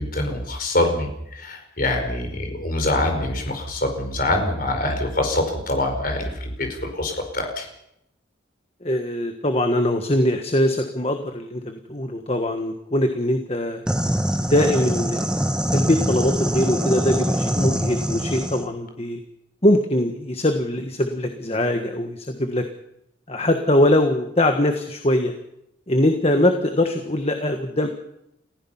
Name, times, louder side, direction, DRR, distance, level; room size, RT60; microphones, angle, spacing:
voice 1, 0.0-7.7, left 1 dB, 45° left, 4 dB, 4.9 m, -25 dB
voice 2, 8.8-13.8 14.4-15.3 15.7-19.2 19.6-22.6 23.3-25.3 25.9-27.9, left 1 dB, 30° left, 6 dB, 1.5 m, -22 dB
sound 1, 13.9-18.7, equal, 5° right, 1.4 m, -24 dB
29.5 x 15.5 x 5.7 m, 0.80 s
head